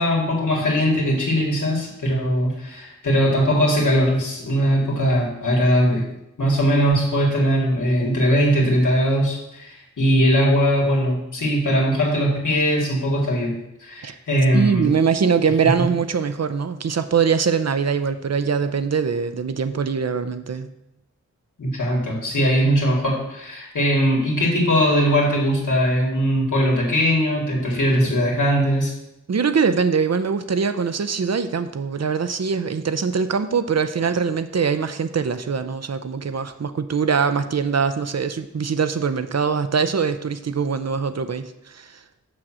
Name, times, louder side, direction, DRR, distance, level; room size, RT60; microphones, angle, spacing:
voice 1, 0.0-6.0 6.4-13.5 13.8-14.9 21.6-28.9, equal, 90° left, -2 dB, 2.2 m, -20 dB
voice 2, 14.5-20.7 29.3-42.0, right 6 dB, 60° right, 10 dB, 0.7 m, -22 dB
6.3 x 6.0 x 6.3 m, 0.87 s
cardioid pair, 50°, 30 cm